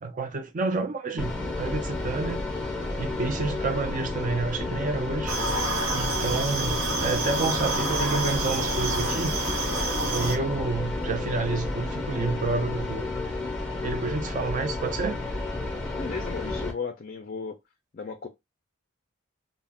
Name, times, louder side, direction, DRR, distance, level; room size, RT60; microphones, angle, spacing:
voice 1, 0.0-2.4 3.0-5.6 5.9-9.3 10.1-13.1 13.8-15.2, right 3 dB, 40° right, 0.4 m, -29 dB
sound 1, 1.2-16.7, left 2 dB, 5° left, 0.7 m, -31 dB
sound 2, 5.3-10.4, right 2 dB, 80° right, 0.8 m, -28 dB
voice 2, 16.0-17.6 17.9-18.3, left 5 dB, 40° left, 0.4 m, -35 dB
2.4 x 2.1 x 3.4 m
head